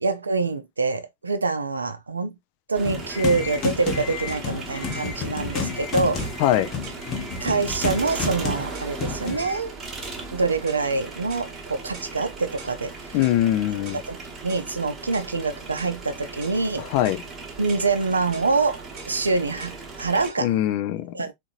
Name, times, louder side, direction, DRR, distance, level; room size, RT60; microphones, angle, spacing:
voice 1, 0.0-2.3 2.7-6.2 7.4-9.7 10.3-12.9 14.1-16.9 17.6-20.5 21.1-21.3, right 3 dB, 75° right, 0.5 m, -25 dB
sound 1, 2.7-20.3, right 3 dB, 20° right, 1.0 m, -38 dB
sound 2, 2.8-9.6, left 5 dB, 30° left, 0.9 m, -31 dB
sound 3, 3.6-3.8 4.3-4.5 4.9-5.1 5.5-5.8 6.2-6.4 6.8-7.0 7.5-7.7 8.1-8.3 8.7-9.0 9.4-9.6 10.0-10.2 10.7-10.9 11.3-11.5 11.9-12.1 12.6-12.8 13.2-13.4 13.8-14.1 14.5-14.7 15.1-15.3 15.8-16.0 16.4-16.6 17.0-17.3 17.7-17.9 18.3-18.5 19.0-19.2 19.6-19.8 20.2-20.4, right 4 dB, 40° right, 1.3 m, -44 dB
voice 2, 13.1-14.0 16.8-17.2 20.4-21.1, left 12 dB, 45° left, 0.4 m, -22 dB
3.8 x 2.6 x 2.4 m
figure-of-eight pair, 90°, 0 cm